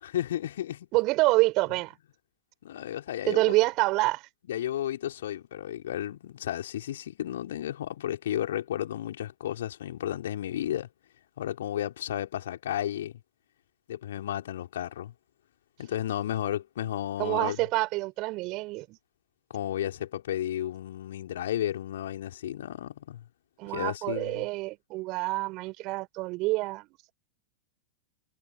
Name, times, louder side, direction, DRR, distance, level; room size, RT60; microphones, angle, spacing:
voice 1, 0.0-0.9 2.6-3.5 4.5-10.9 11.4-13.1 13.9-15.1 15.8-17.6 19.5-23.2 23.7-24.5, left 11 dB, 60° left, 3.8 m, -33 dB
voice 2, 0.9-1.9 3.3-4.2 17.2-19.0 23.6-26.9, right 22 dB, 40° right, 5.8 m, -27 dB
figure-of-eight pair, 90°, 0 cm